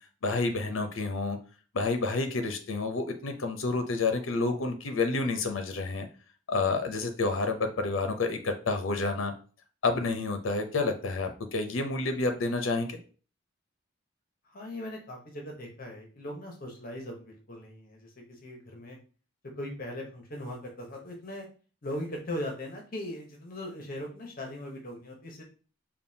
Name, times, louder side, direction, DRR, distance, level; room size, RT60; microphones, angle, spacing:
voice 1, 0.2-1.4 1.7-6.1 6.5-9.3 9.8-13.0, left 3 dB, 75° left, 6 dB, 0.6 m, -29 dB
voice 2, 14.4-19.0 19.6-21.5 21.8-25.4, left 1 dB, 45° left, 0 dB, 0.9 m, -39 dB
5.3 x 2.3 x 2.7 m, 0.38 s
head